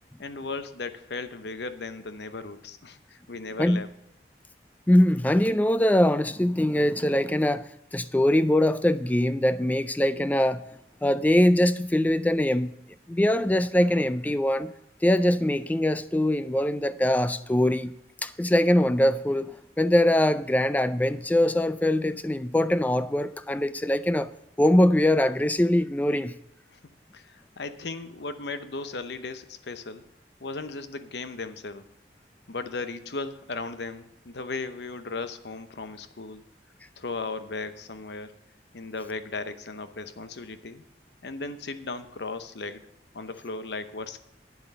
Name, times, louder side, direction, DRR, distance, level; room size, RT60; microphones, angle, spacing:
voice 1, 0.2-3.9 26.7-26.8 27.1-30.0 30.4-31.9 32.5-36.5 37.0-38.3 38.7-40.8 41.2-42.8 43.1-44.2, left 3 dB, 75° left, 0.8 m, -36 dB
voice 2, 4.9-10.6 11.0-12.7 13.1-14.7 15.0-17.9 18.2-24.3 24.6-26.3, left 1 dB, 10° left, 0.3 m, -22 dB
9.7 x 7.6 x 6.7 m
head